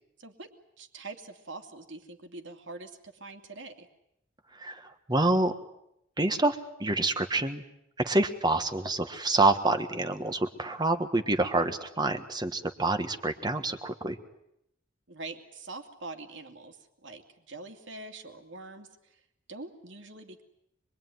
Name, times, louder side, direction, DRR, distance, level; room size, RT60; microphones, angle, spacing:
voice 1, 0.2-0.5 0.8-3.9 15.1-19.2 19.5-20.4, right 3 dB, 65° right, 5 dB, 2.7 m, -44 dB
voice 2, 4.5-5.6 6.2-7.6 8.0-14.2, right 2 dB, 20° right, 8 dB, 1.4 m, -27 dB
26.0 x 22.0 x 9.4 m, 0.80 s
head